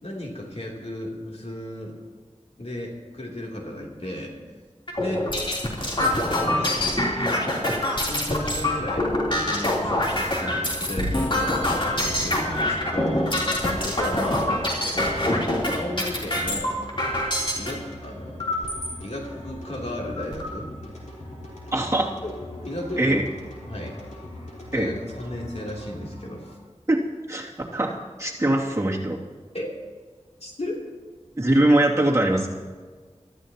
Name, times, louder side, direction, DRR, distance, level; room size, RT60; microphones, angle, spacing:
voice 1, 0.0-2.0 2.6-4.3 5.0-5.3 5.9-7.0 8.1-14.6 14.9-16.8 17.6-18.4 19.0-20.7 22.2-22.3 22.7-23.2 23.7-24.0 24.7-26.5 29.5-29.7 30.4-30.8, left 1 dB, 60° left, -2 dB, 3.2 m, -34 dB
sound 1, 4.9-17.7 18.4-18.9 19.5-19.6 19.9-20.5, left 1 dB, 45° left, 3.5 m, -25 dB
sound 2, 9.9-26.5, left 1 dB, 85° left, 4.1 m, -40 dB
voice 2, 21.7-22.2 23.0-23.2 24.7-24.9 26.9-27.0 27.3-29.2 31.4-32.5, right 1 dB, 25° right, -4 dB, 2.6 m, -22 dB
23.5 x 14.0 x 3.0 m, 1.5 s
wide cardioid pair, 45°, 12 cm